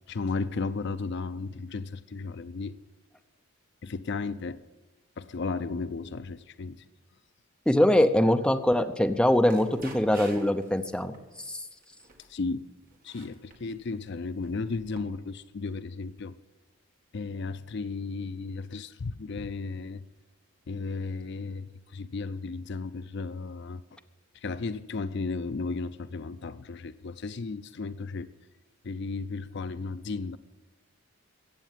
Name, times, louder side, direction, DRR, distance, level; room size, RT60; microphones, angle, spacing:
voice 1, 0.1-2.8 3.8-4.6 5.2-6.8 12.3-12.7 13.0-16.4 17.1-20.0 20.7-24.0 24.3-28.3 28.8-30.4, left 4 dB, 50° left, 0.4 m, -34 dB
voice 2, 7.7-11.1 11.5-11.6, left 1 dB, 5° left, 0.6 m, -23 dB
sound 1, 9.4-10.7 11.1-11.4 11.8-12.3 12.9-13.8 14.4-15.0, right 3 dB, 40° right, 2.1 m, -48 dB
15.5 x 8.4 x 9.1 m
head